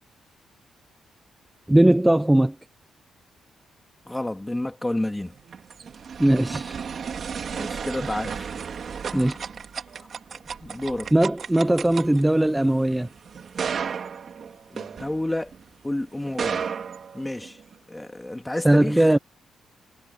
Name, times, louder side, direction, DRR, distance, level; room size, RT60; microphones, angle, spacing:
voice 1, 1.7-2.5 6.2-6.8 9.1-9.3 11.1-13.1 18.6-19.2, right 1 dB, 10° right, 0.9 m, -19 dB
voice 2, 4.1-5.3 7.5-8.5 9.1-9.4 10.6-11.1 14.7-15.5 15.8-16.7 17.1-17.6 17.9-19.0, left 1 dB, 10° left, 2.7 m, -30 dB
sound 1, 5.3-15.6 16.2-17.7, right 6 dB, 55° right, 3.4 m, -34 dB
cardioid pair, 80°, 0 cm